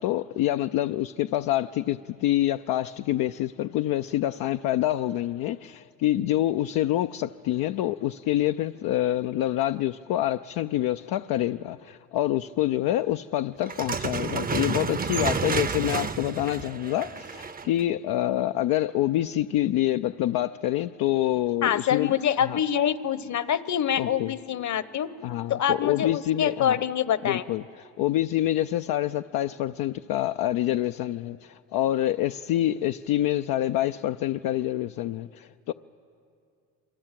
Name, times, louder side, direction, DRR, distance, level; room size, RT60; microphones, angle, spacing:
voice 1, 0.0-22.1 22.5-22.6 24.0-24.3 25.2-26.8 27.2-35.7, left 13 dB, 80° left, 0.5 m, -26 dB
sound 1, 13.6-17.8, right 5 dB, 25° right, 0.7 m, -30 dB
voice 2, 21.6-25.1 25.5-27.4, left 9 dB, 55° left, 1.0 m, -25 dB
27.0 x 23.5 x 7.6 m
supercardioid pair, 75°, 34 cm